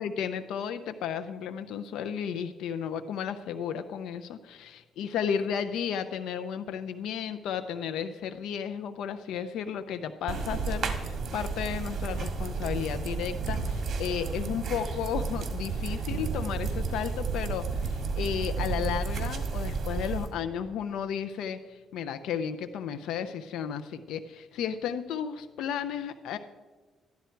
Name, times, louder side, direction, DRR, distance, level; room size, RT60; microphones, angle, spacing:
voice 1, 0.0-26.4, left 8 dB, 85° left, 8 dB, 0.5 m, -33 dB
sound 1, 10.3-20.3, right 4 dB, 50° right, 1.8 m, -32 dB
13.0 x 10.5 x 4.5 m, 1.3 s
cardioid pair, 90°, 0 cm